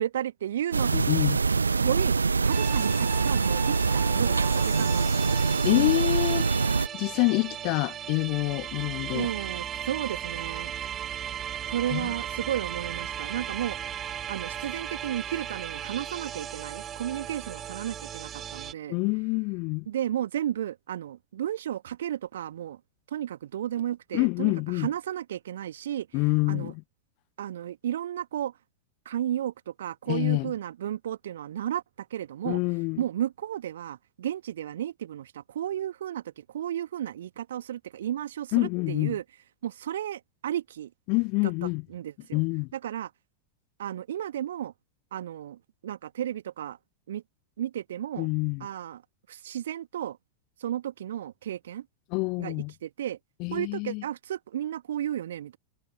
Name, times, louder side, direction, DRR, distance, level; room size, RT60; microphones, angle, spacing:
voice 1, 0.0-0.9 1.8-2.1 2.4-5.6 9.1-10.7 11.7-13.8 14.3-19.0 19.9-22.8 23.1-26.1 26.5-26.7 27.4-28.5 29.0-32.6 33.0-39.2 39.6-40.9 41.9-42.4 42.7-43.1 43.8-44.7 45.1-46.8 47.1-47.2 47.6-48.3 48.6-49.0 49.3-50.2 50.6-51.8 52.4-53.2 53.5-55.6, right 11 dB, 60° right, 1.6 m, -33 dB
sound 1, 0.7-6.9, right 4 dB, 75° right, 0.3 m, -24 dB
voice 2, 0.9-1.4 5.6-6.5 6.9-9.3 11.9-12.1 18.9-19.9 24.1-24.9 26.1-26.8 30.1-30.5 32.4-33.0 38.5-39.2 41.1-41.8 42.3-42.7 48.2-48.7 52.1-52.7 53.4-54.0, left 31 dB, 45° left, 0.6 m, -27 dB
sound 2, 2.5-18.7, right 10 dB, 25° right, 2.3 m, -37 dB
figure-of-eight pair, 90°, 0 cm